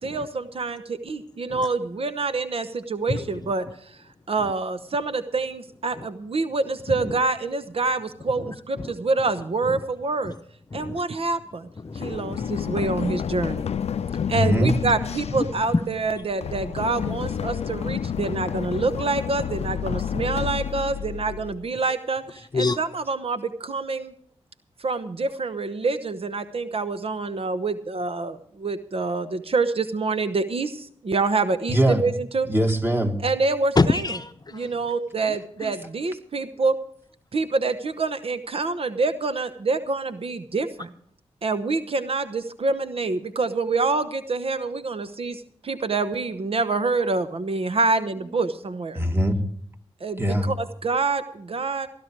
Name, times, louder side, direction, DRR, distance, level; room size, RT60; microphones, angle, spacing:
voice 1, 0.0-3.7 4.3-10.3 10.7-11.7 11.9-13.7 14.3-15.7 16.0-24.1 24.8-32.5 33.2-33.8 34.5-36.8 37.3-40.9 41.4-49.0 50.0-51.9, right 3 dB, 60° right, 1.0 m, -26 dB
voice 2, 3.1-3.5 4.4-4.5 5.9-6.1 6.9-7.2 8.4-9.0 9.6-9.9 10.2-10.4 10.7-11.0 11.8-12.8 13.3-14.6 15.3-15.8 16.1-16.2 18.4-18.5 19.0-19.1 20.3-20.7 22.4-22.8 33.7-34.9 35.3-35.8, left 3 dB, 40° left, 0.8 m, -29 dB
Run, 12.0-21.7, left 8 dB, 70° left, 0.5 m, -30 dB
voice 3, 14.3-14.8 31.7-32.0 32.5-33.2 48.9-49.3 50.2-50.5, equal, 20° right, 2.2 m, -21 dB
16.0 x 11.5 x 4.7 m
cardioid pair, 50°, 11 cm